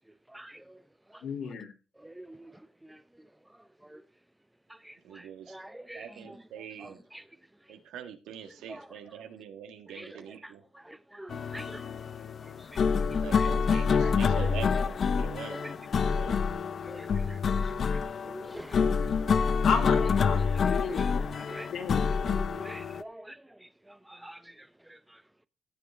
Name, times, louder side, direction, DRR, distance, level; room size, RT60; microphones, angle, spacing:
voice 1, 0.3-0.8 1.1-1.3 2.0-3.3 3.8-4.0 4.7-6.4 6.8-7.3 8.7-9.0 9.9-11.9 12.4-12.8 13.3-13.5 14.0-14.6 15.5-16.3 16.8-19.1 19.5-19.6 20.6-21.7 22.3-25.2, right 1 dB, 10° right, 0.6 m, -47 dB
voice 2, 1.2-1.7 19.6-20.4 20.7-21.1 21.7-22.1, left 6 dB, 70° left, 3.0 m, -32 dB
voice 3, 5.0-5.6 5.9-7.0 7.7-10.6 13.2-15.6 16.1-16.4, right 9 dB, 85° right, 1.6 m, -43 dB
sound 1, 11.3-23.0, left 5 dB, 50° left, 0.7 m, -27 dB
15.5 x 7.4 x 3.5 m
cardioid pair, 90°, 0 cm